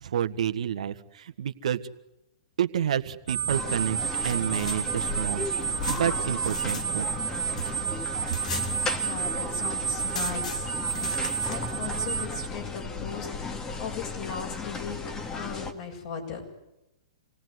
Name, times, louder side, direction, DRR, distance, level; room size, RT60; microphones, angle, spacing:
voice 1, 0.0-1.8 2.6-4.0 4.2-5.5 5.9-7.1, right 9 dB, 70° right, 10 dB, 1.5 m, -29 dB
sound 1, 3.3-12.5, right 10 dB, 20° right, 1.7 m, -31 dB
sound 2, 3.5-15.7, left 4 dB, 20° left, 2.0 m, -35 dB
sound 3, 4.0-6.9 7.2-9.3 9.6-9.7 9.9-11.7, left 4 dB, 80° left, 3.4 m, -40 dB
voice 2, 8.5-15.0 15.3-16.4, left 6 dB, 50° left, 0 dB, 7.3 m, -38 dB
27.0 x 18.5 x 9.6 m, 0.91 s
hypercardioid pair, 130°, 4 cm